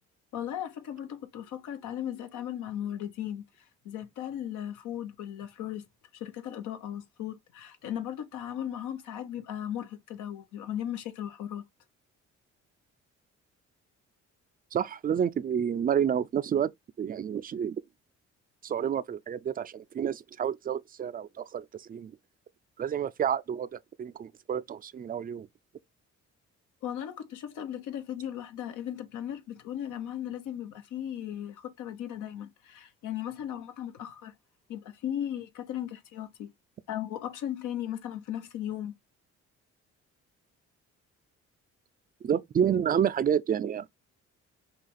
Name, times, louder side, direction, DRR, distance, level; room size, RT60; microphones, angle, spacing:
voice 1, 0.3-3.4 3.8-5.8 6.1-11.6 26.8-34.3 34.7-36.5 36.9-38.9, left 10 dB, 85° left, 1.0 m, -37 dB
voice 2, 14.7-16.7 17.0-17.8 18.6-22.1 22.8-25.5 42.2-43.9, right 8 dB, 30° right, 0.4 m, -29 dB
5.6 x 2.3 x 3.3 m
cardioid pair, 90°, 30 cm